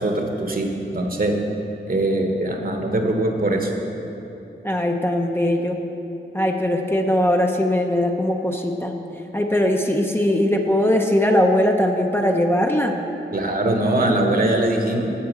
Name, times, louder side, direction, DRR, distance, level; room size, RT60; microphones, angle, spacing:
voice 1, 0.0-1.3 1.9-3.7 13.3-15.1, right 1 dB, 50° right, 2 dB, 1.2 m, -22 dB
voice 2, 4.6-5.8 6.3-9.0 9.3-12.9, left 1 dB, 10° left, 2 dB, 0.6 m, -20 dB
8.6 x 6.9 x 7.3 m, 2.9 s
wide cardioid pair, 90°, 19 cm